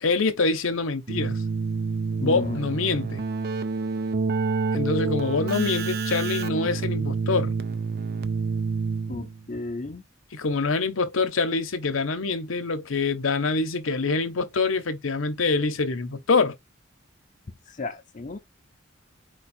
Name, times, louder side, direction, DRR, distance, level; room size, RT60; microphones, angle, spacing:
voice 1, 0.0-1.4 2.2-3.2 4.7-7.5 10.3-16.6, left 4 dB, 80° left, 0.8 m, -25 dB
Keyboard (musical), 1.1-9.4, right 4 dB, 50° right, 0.5 m, -28 dB
voice 2, 2.2-2.7 9.1-10.0 17.8-18.4, left 3 dB, 40° left, 0.6 m, -33 dB
4.7 x 2.3 x 4.3 m
head